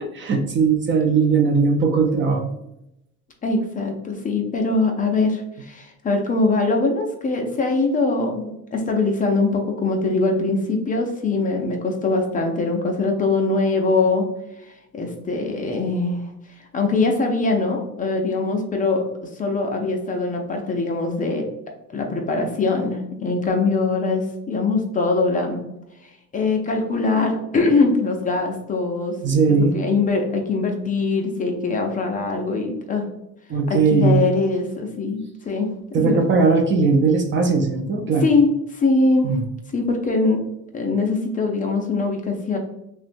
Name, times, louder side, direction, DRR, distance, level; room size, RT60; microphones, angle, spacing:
voice 1, 0.2-2.5 29.2-29.8 33.5-34.2 35.9-38.3 39.2-39.4, right 4 dB, 35° right, 5 dB, 0.4 m, -19 dB
voice 2, 3.4-14.3 14.6-16.3 16.7-21.5 21.9-25.6 26.3-33.1 33.7-36.2 38.2-39.4 39.7-40.4 40.7-42.6, left 3 dB, 25° left, 2 dB, 0.5 m, -22 dB
5.8 x 2.2 x 2.5 m, 0.84 s
cardioid pair, 155°, 35 cm